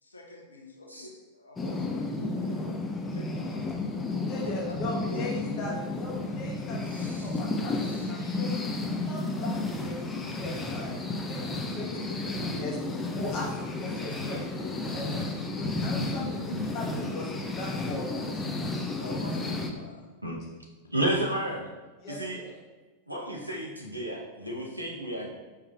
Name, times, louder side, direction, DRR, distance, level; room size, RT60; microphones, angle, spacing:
voice 1, 0.0-2.9 3.1-3.7 4.4-4.7 5.1-5.3 5.6-5.8 19.0-20.1, left 1 dB, 75° left, 1 dB, 0.7 m, -45 dB
sound 1, 1.6-19.7, left 2 dB, 15° left, 0.5 m, -32 dB
voice 2, 4.2-5.7 6.0-18.2 22.0-22.5, left 2 dB, 40° left, -2 dB, 1.0 m, -39 dB
voice 3, 6.9-7.3 7.9-8.4 16.5-16.6 20.2-20.4 20.9-21.7 22.1-22.4 23.1-25.3, right 1 dB, 90° right, -2 dB, 0.7 m, -32 dB
4.6 x 4.6 x 2.3 m, 1.2 s
figure-of-eight pair, 90°, 0 cm